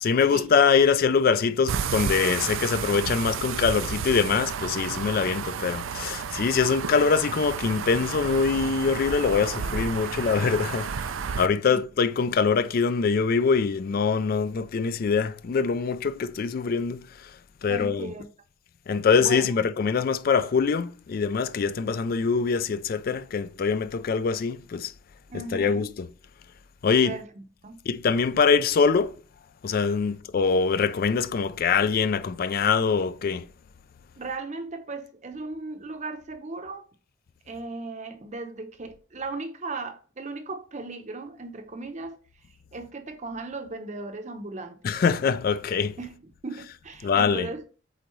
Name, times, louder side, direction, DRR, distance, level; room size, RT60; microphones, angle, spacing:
voice 1, 0.0-17.3 17.6-18.1 18.9-24.9 25.5-25.9 26.8-27.1 27.9-29.2 29.6-33.5 44.8-46.0 47.0-47.5, left 5 dB, 50° left, 0.3 m, -24 dB
sound 1, 1.7-11.5, right 6 dB, 85° right, 0.4 m, -32 dB
voice 2, 17.7-18.3 19.2-19.5 25.3-25.9 27.0-27.8 34.2-36.8 37.5-42.2 42.7-44.8 46.0-46.1 46.4-47.6, right 3 dB, 35° right, 0.7 m, -36 dB
7.9 x 3.9 x 3.1 m
head